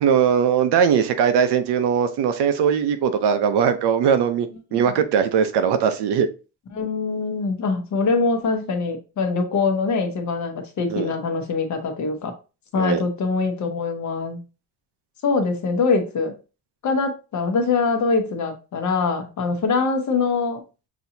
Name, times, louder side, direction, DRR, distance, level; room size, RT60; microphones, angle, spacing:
voice 1, 0.0-6.3 10.9-11.1 12.7-13.0, right 7 dB, 75° right, 9 dB, 0.8 m, -20 dB
voice 2, 6.7-12.3 12.7-14.4 15.2-16.3 16.8-20.6, left 4 dB, 45° left, 5 dB, 0.9 m, -23 dB
6.1 x 2.8 x 2.7 m, 0.31 s
cardioid pair, 170°, 40 cm